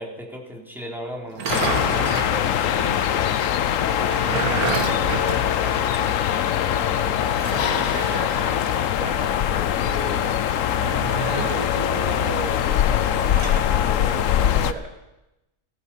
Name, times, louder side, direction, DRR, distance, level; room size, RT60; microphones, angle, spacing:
voice 1, 0.0-1.6 6.8-7.2, equal, ahead, -2 dB, 3.1 m, -36 dB
sound 1, 1.3-2.4 3.9-6.2 6.4-6.5 7.3-8.2 10.7-11.7 13.1-13.7, right 6 dB, 75° right, 1.8 m, -30 dB
sound 2, 1.5-14.7, left 10 dB, 65° left, 1.0 m, -22 dB
voice 2, 1.9-5.8 6.7-10.3 11.2-14.9, right 3 dB, 25° right, 3 dB, 1.3 m, -36 dB
17.5 x 14.5 x 5.7 m, 0.95 s
omnidirectional pair, 1.6 m